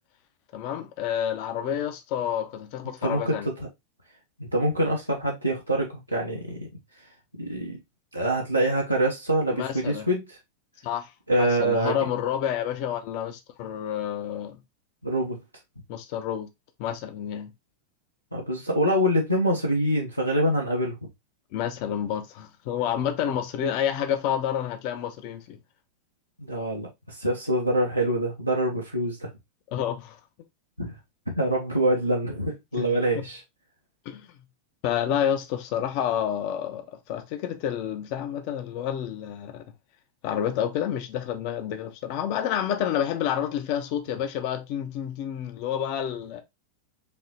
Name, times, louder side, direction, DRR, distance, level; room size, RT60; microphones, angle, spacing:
voice 1, 0.5-3.5 9.5-10.1 10.8-11.1 11.4-14.6 15.9-16.5 16.8-17.5 21.5-25.6 29.7-30.2 32.8-33.2 34.0-34.3 34.8-39.7 40.2-46.4, left 9 dB, 45° left, 0.8 m, -29 dB
voice 2, 3.0-3.7 4.4-6.7 7.4-7.8 8.1-10.3 11.3-12.0 15.0-15.4 18.3-21.0 26.4-29.3 30.8-30.9 31.3-33.4, right 1 dB, 90° right, 1.0 m, -25 dB
5.2 x 2.9 x 2.9 m
figure-of-eight pair, 90°, 0 cm